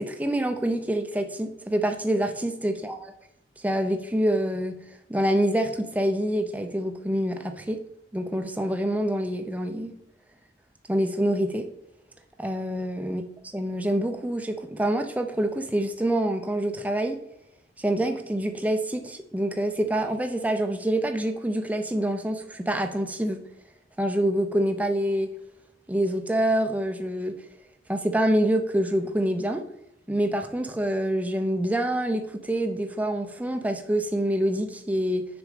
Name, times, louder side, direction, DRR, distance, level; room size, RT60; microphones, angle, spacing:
voice 1, 0.0-3.0 3.6-4.8 5.1-7.8 8.1-9.9 10.9-11.7 12.4-13.2 13.5-17.2 17.8-23.4 24.0-25.3 25.9-27.3 27.9-29.6 30.1-35.3, right 1 dB, 10° right, 6 dB, 0.5 m, -26 dB
6.5 x 5.1 x 5.0 m, 0.79 s
head